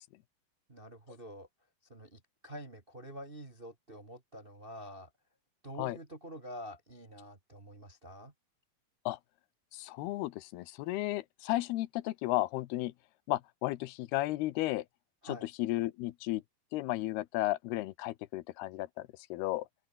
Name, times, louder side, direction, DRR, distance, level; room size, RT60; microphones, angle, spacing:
voice 1, 0.7-1.5 1.9-5.1 5.6-8.3 15.2-15.5, equal, 25° right, 1.3 m, -47 dB
voice 2, 9.7-12.9 13.3-14.8 15.2-16.4 16.7-19.7, left 17 dB, 85° left, 2.9 m, -34 dB
open air
omnidirectional pair, 4.5 m